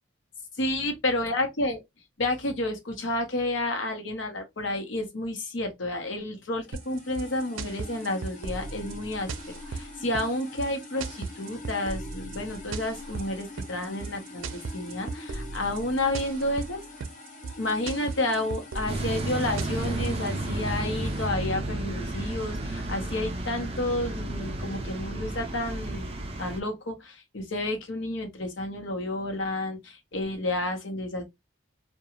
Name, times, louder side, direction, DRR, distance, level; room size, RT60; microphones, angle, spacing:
voice 1, 0.6-1.8 2.2-16.8 17.6-31.2, left 1 dB, 70° left, 0.8 m, -30 dB
sound 1, 6.6-21.3, left 2 dB, 40° left, 0.6 m, -44 dB
sound 2, 6.7-20.3, right 4 dB, 85° right, 0.5 m, -37 dB
sound 3, 18.9-26.6, right 1 dB, 30° right, 0.4 m, -32 dB
2.4 x 2.2 x 2.9 m
head